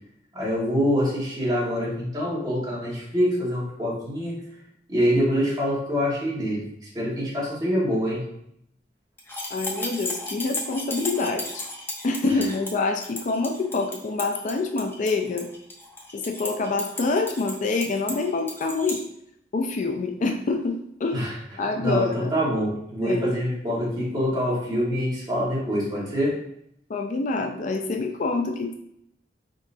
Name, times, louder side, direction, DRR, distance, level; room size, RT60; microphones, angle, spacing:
voice 1, 0.3-4.4 4.9-6.6 6.9-8.2 12.3-12.4 21.1-21.3 21.8-26.4, equal, 25° right, -7 dB, 1.6 m, -25 dB
sound 1, 9.2-19.0, left 2 dB, 15° left, 0.7 m, -35 dB
voice 2, 9.5-11.7 12.0-15.5 16.1-19.0 19.5-21.3 21.6-22.4 23.0-23.2 26.9-28.7, left 3 dB, 45° left, 4 dB, 0.4 m, -26 dB
4.9 x 3.8 x 2.7 m, 0.74 s
head